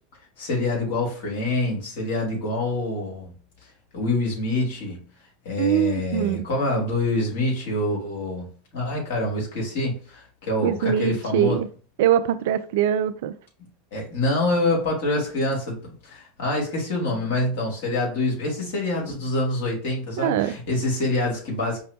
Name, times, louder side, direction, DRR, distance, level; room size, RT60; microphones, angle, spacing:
voice 1, 0.4-3.3 3.9-5.0 5.5-11.6 13.9-21.8, left 2 dB, 65° left, 2.0 m, -26 dB
voice 2, 5.6-6.4 10.6-11.7 12.0-13.3 20.2-20.5, right 10 dB, 65° right, 0.3 m, -22 dB
5.3 x 2.2 x 2.6 m
hypercardioid pair, 90°, 0 cm